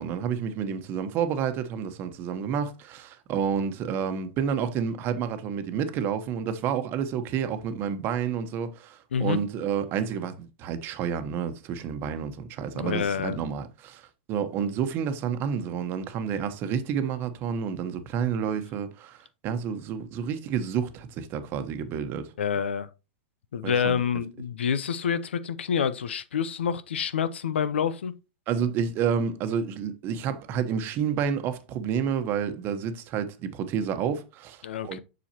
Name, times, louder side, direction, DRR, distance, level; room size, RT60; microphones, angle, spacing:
voice 1, 0.0-22.3 23.6-24.0 28.5-35.0, right 7 dB, 35° right, 1.1 m, -29 dB
voice 2, 12.7-13.4 22.4-22.9 23.5-28.2 34.6-35.0, left 7 dB, 85° left, 0.7 m, -27 dB
7.3 x 6.3 x 2.9 m
hypercardioid pair, 125°, 6 cm